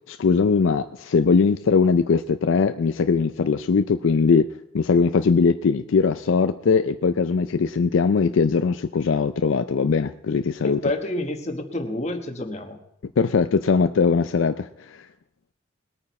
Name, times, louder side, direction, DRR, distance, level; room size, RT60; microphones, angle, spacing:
voice 1, 0.1-4.5 4.7-10.8 13.2-15.1, left 5 dB, 65° left, 10 dB, 0.4 m, -20 dB
voice 2, 10.8-12.8, left 1 dB, 35° left, 5 dB, 1.3 m, -28 dB
20.5 x 8.9 x 4.2 m, 0.79 s
head